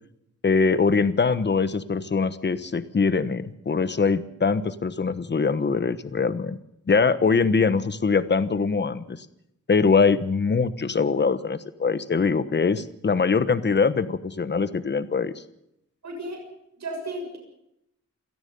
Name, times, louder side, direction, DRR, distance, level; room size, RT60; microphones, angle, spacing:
voice 1, 0.4-6.6 6.9-9.3 9.7-15.3, left 5 dB, 35° left, 13 dB, 1.2 m, -23 dB
voice 2, 16.0-16.4 16.8-17.4, right 1 dB, 65° right, 2 dB, 7.2 m, -33 dB
28.5 x 17.0 x 5.5 m, 0.79 s
wide cardioid pair, 180°, 30 cm